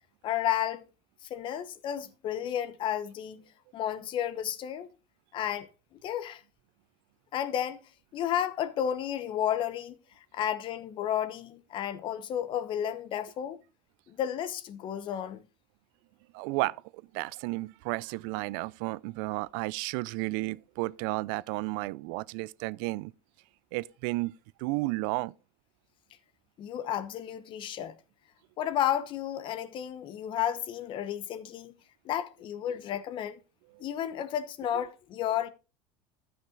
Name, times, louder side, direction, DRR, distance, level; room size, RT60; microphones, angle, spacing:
voice 1, 0.2-0.8 1.2-3.4 3.7-4.9 5.3-5.7 6.0-6.4 7.3-7.8 8.1-10.0 10.3-13.6 14.1-15.4 26.6-27.9 28.6-31.7 32.0-33.4 33.8-35.5, left 10 dB, 45° left, 0.9 m, -32 dB
voice 2, 16.3-16.8 17.1-23.1 23.7-24.3 24.6-25.3 33.8-33.9, right 22 dB, 70° right, 0.4 m, -32 dB
12.5 x 5.9 x 3.8 m
supercardioid pair, 120°, 12 cm